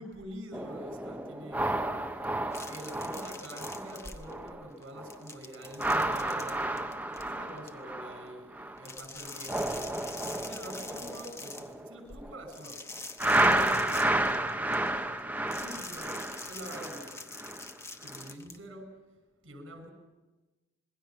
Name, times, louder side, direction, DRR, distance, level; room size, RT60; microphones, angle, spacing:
voice 1, 0.0-1.7 2.7-12.9 13.1-15.1 15.6-17.2 18.0-18.9 19.4-19.9, equal, 80° right, 6 dB, 6.3 m, -46 dB
sound 1, 0.5-4.7 5.0-5.3 5.7-8.9 9.2-12.5 13.2-17.7 18.1-18.3, right 1 dB, 10° right, 1.0 m, -32 dB
sound 2, 2.5-4.5 4.8-7.7 8.8-11.7 12.5-14.9 15.5-18.6, left 3 dB, 15° left, 1.0 m, -45 dB
26.5 x 21.5 x 5.9 m, 1.2 s
head